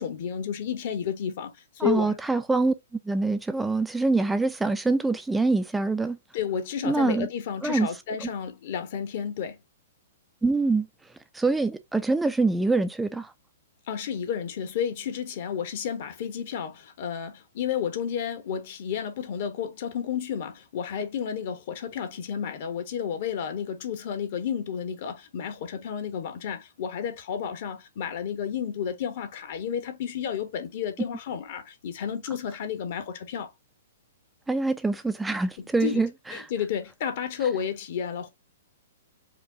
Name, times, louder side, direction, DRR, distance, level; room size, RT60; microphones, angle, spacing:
voice 1, 0.0-2.2 6.3-9.6 13.9-33.5 35.6-36.0 36.3-38.3, left 8 dB, 55° left, 1.1 m, -31 dB
voice 2, 1.8-2.7 3.0-6.2 6.8-7.3 7.6-7.9 8.2-8.3 10.4-10.9 11.3-13.3 34.5-36.5, right 3 dB, 5° right, 0.4 m, -25 dB
5.0 x 2.3 x 3.8 m
hypercardioid pair, 115°, 0 cm